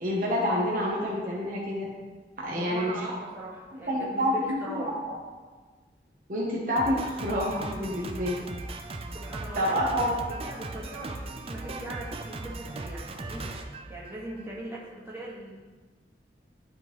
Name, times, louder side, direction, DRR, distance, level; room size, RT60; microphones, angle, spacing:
voice 1, 0.0-1.8 2.4-3.1 3.9-4.9 6.3-8.3 9.5-10.1, equal, 50° right, -4 dB, 1.0 m, -28 dB
voice 2, 2.5-5.0 8.2-8.4 9.1-10.0 10.3-13.5 13.9-15.5, right 1 dB, 15° right, -7 dB, 1.5 m, -40 dB
Drum kit, 6.8-14.5, right 2 dB, 35° right, 0.4 m, -38 dB
11.0 x 3.7 x 3.1 m, 1.4 s
head